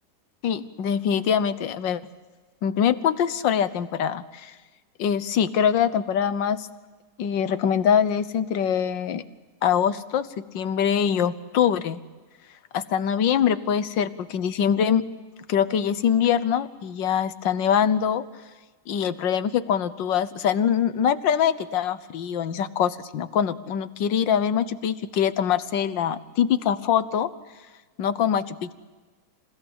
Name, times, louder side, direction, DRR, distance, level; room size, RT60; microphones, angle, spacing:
voice 1, 0.4-2.0 2.6-4.5 5.0-6.7 7.2-9.2 9.6-10.3 10.5-12.0 12.7-15.0 15.5-18.2 18.9-27.3 28.0-28.7, left 8 dB, 85° left, 13 dB, 1.7 m, -23 dB
27.5 x 17.0 x 8.8 m, 1.3 s
omnidirectional pair, 1.9 m